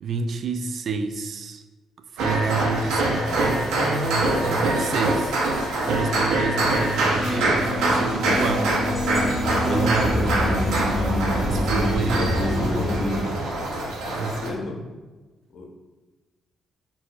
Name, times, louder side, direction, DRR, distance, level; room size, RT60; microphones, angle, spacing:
voice 1, 0.0-1.6 2.2-5.4 5.8-8.7 9.6-10.6 11.4-12.3 12.7-12.8 14.2-14.3, right 4 dB, 60° right, 9 dB, 0.3 m, -29 dB
sound 1, 2.2-14.5, right 2 dB, 90° right, 0.7 m, -24 dB
voice 2, 2.9-3.6 4.2-4.6 10.1-10.7 12.2-13.0 14.1-14.8 15.5-15.7, left 2 dB, 65° left, 2 dB, 0.8 m, -33 dB
sound 2, 7.1-13.3, left 1 dB, 15° left, 0.8 m, -25 dB
4.4 x 4.1 x 2.3 m, 1.2 s
cardioid pair, 90°, 0 cm